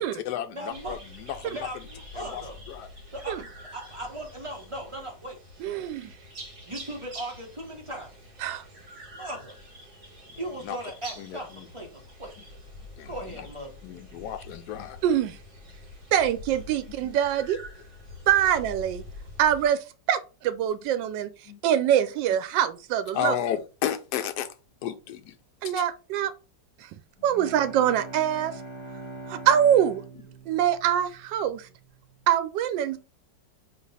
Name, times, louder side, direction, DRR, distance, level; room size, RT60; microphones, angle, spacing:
voice 1, 0.0-1.7 2.1-2.4 2.7-2.9 10.6-10.8 11.2-11.7 13.0-13.5 13.8-15.0 21.5-21.6 23.1-24.5 24.8-25.4 25.6-25.7, left 10 dB, 70° left, 1.1 m, -33 dB
voice 2, 0.5-1.0 1.5-2.6 3.1-5.4 6.6-8.1 9.1-9.6 10.4-12.5 13.1-13.8, right 1 dB, 20° right, 1.0 m, -38 dB
sound 1, 0.7-19.7, left 1 dB, 60° right, 2.9 m, -46 dB
voice 3, 5.6-6.1 8.4-8.6 15.0-15.4 16.1-17.6 18.3-19.0 19.4-21.3 21.6-23.3 25.6-26.3 26.8-28.5 29.3-30.0 30.5-31.7 32.3-33.0, right 10 dB, 85° right, 1.3 m, -24 dB
Bowed string instrument, 27.2-31.7, right 2 dB, 20° left, 1.1 m, -42 dB
4.2 x 3.0 x 4.0 m
omnidirectional pair, 1.9 m